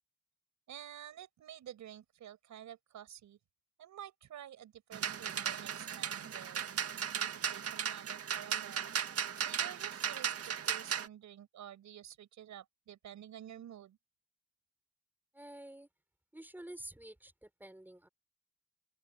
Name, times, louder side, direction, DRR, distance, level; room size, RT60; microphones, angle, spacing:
voice 1, 0.7-3.4 3.8-6.7 7.1-8.9 9.4-14.0, right 11 dB, 70° right, 6.3 m, -50 dB
sound 1, 4.9-11.1, right 8 dB, 50° right, 2.0 m, -36 dB
voice 2, 15.3-15.9 16.3-18.1, right 1 dB, 5° right, 5.8 m, -49 dB
open air
cardioid pair, 90°, 30 cm